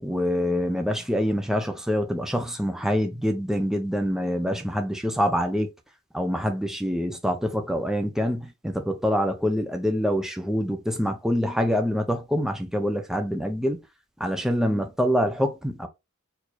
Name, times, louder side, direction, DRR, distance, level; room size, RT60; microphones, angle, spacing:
voice 1, 0.0-5.7 6.1-13.8 14.2-15.9, equal, ahead, 0.6 m, -25 dB
4.6 x 2.7 x 4.0 m
head